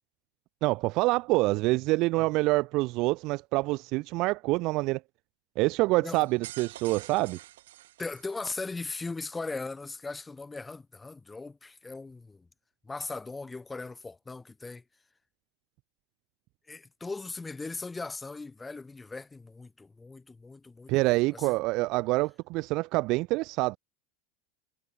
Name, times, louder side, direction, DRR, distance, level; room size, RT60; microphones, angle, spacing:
voice 1, 0.6-5.0 5.6-7.4 20.9-23.8, right 22 dB, 50° right, 0.5 m, -26 dB
sound 1, 6.1-8.7, right 14 dB, 70° right, 1.3 m, -47 dB
voice 2, 8.0-12.5 12.8-14.8 16.7-21.6, left 3 dB, 15° left, 1.6 m, -39 dB
hypercardioid pair, 90°, 0 cm